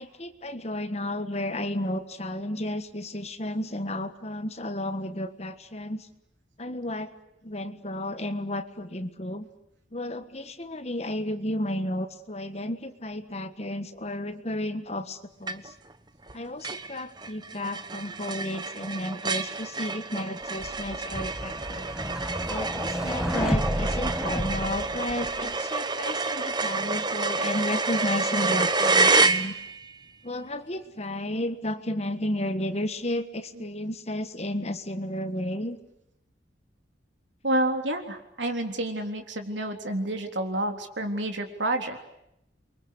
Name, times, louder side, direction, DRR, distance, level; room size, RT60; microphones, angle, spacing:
voice 1, 0.0-6.1 6.6-7.1 7.4-9.5 9.9-15.7 16.3-21.8 22.5-29.5 30.2-35.8, left 1 dB, 35° left, 10 dB, 1.5 m, -32 dB
sound 1, 15.5-15.9 16.3-16.4 16.6-29.9, right 3 dB, 25° right, 1.0 m, -28 dB
sound 2, 20.6-25.5, equal, 5° right, 1.6 m, -31 dB
voice 2, 37.4-42.0, right 1 dB, 75° right, 5 dB, 3.6 m, -29 dB
28.5 x 23.5 x 8.3 m, 0.80 s
head